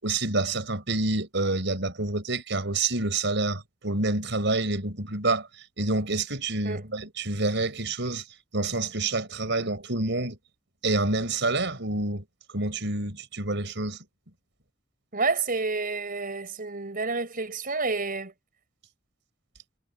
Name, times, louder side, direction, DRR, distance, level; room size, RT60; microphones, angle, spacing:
voice 1, 0.0-5.5 5.8-8.2 8.5-10.4 10.8-12.2 12.5-14.0, right 2 dB, 65° right, 6.0 m, -27 dB
voice 2, 15.1-18.3, right 4 dB, 45° right, 4.8 m, -29 dB
head